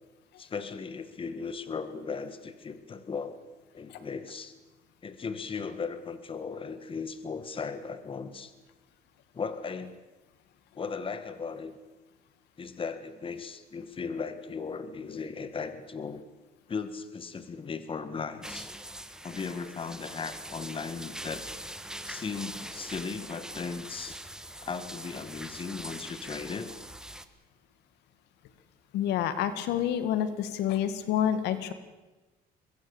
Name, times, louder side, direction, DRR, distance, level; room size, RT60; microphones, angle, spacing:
voice 1, 0.4-3.4 3.7-4.5 5.0-8.5 9.3-10.0 10.8-11.8 12.6-16.2 16.7-18.7 19.2-21.5 22.0-24.2 24.6-26.7, left 5 dB, 30° left, 11 dB, 1.8 m, -37 dB
sound 1, 18.4-27.3, right 1 dB, 5° right, 1.4 m, -42 dB
voice 2, 28.9-31.7, left 10 dB, 85° left, 11 dB, 1.9 m, -28 dB
24.0 x 21.5 x 7.2 m, 1.2 s
cardioid pair, 110°, 17 cm